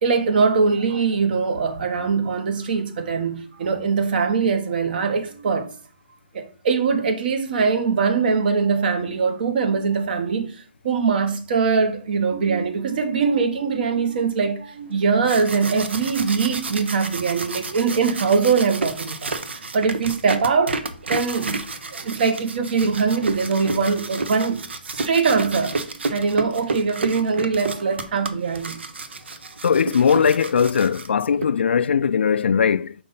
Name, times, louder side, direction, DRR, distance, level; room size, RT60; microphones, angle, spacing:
voice 1, 0.0-5.7 6.3-20.8 21.1-21.6 22.0-24.6 24.9-25.8 26.1-28.8, right 5 dB, 55° right, 1.2 m, -22 dB
sound 1, 15.0-31.4, right 3 dB, 85° right, 0.8 m, -31 dB
voice 2, 29.6-32.9, left 7 dB, 80° left, 0.3 m, -19 dB
5.2 x 4.2 x 5.6 m
hypercardioid pair, 150°, 6 cm